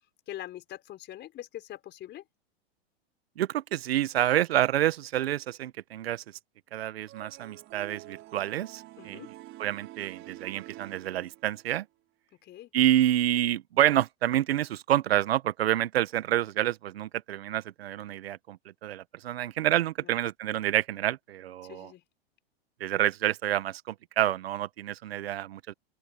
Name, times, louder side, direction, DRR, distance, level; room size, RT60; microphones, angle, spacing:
voice 1, 0.3-2.2 9.0-9.3 12.4-12.7 20.0-20.1 21.6-22.0, left 13 dB, 35° left, 4.8 m, -43 dB
voice 2, 3.4-6.2 6.7-9.2 9.6-11.8 12.7-21.9 22.8-25.7, right 12 dB, 75° right, 1.4 m, -28 dB
sound 1, 7.1-11.7, right 17 dB, 40° right, 4.0 m, -47 dB
open air
hypercardioid pair, 110°, 31 cm